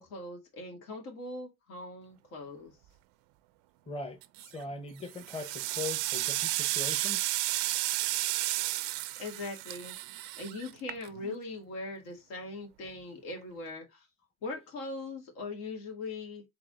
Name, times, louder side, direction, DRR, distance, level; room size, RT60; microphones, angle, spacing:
voice 1, 0.0-2.7 9.2-14.0 14.4-16.4, left 2 dB, 75° left, 2.2 m, -41 dB
voice 2, 3.9-7.3, left 3 dB, 15° left, 0.9 m, -40 dB
sound 1, 4.2-4.6 5.1-11.4, right 17 dB, 85° right, 0.5 m, -32 dB
3.9 x 3.6 x 3.6 m
supercardioid pair, 100°, 38 cm